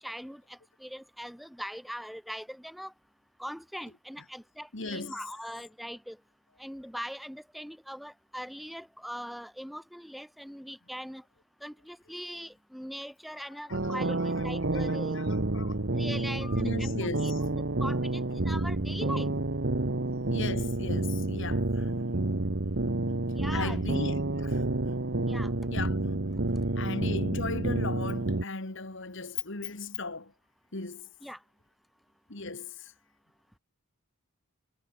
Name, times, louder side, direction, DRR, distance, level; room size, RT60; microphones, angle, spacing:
voice 1, 0.0-2.9 3.4-6.2 6.6-11.2 11.6-15.2 15.9-16.9 17.2-19.3 23.3-23.8 25.3-25.5 31.2-31.4, equal, ahead, 3.8 m, -41 dB
voice 2, 4.7-5.2 13.7-13.9 14.7-15.3 15.5-16.0 16.4-17.4 18.4-18.5 20.3-22.1 22.4-22.5 23.5-24.9 25.7-26.2 26.8-30.3 30.7-31.1 32.3-32.9, left 3 dB, 55° left, 2.2 m, -38 dB
sound 1, 13.7-28.4, right 2 dB, 55° right, 1.2 m, -29 dB
head